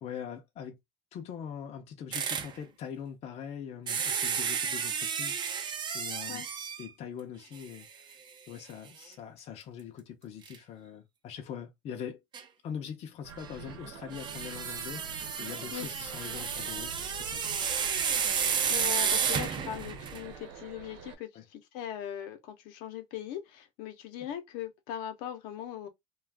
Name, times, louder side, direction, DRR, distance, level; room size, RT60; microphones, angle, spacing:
voice 1, 0.0-0.8 1.1-5.7 5.9-6.4 6.8-8.1 8.5-12.2 12.6-17.5 21.3-21.4, left 8 dB, 45° left, 0.6 m, -42 dB
sound 1, 2.1-2.5 3.9-6.9 7.6-7.7 8.1-8.2 10.5-10.6 12.3-12.4 14.1-20.3, right 7 dB, 30° right, 0.4 m, -32 dB
sound 2, 13.2-21.1, right 5 dB, 90° right, 0.9 m, -47 dB
voice 2, 18.7-25.9, left 10 dB, 70° left, 0.8 m, -40 dB
2.4 x 2.4 x 3.3 m
cardioid pair, 130°, 15 cm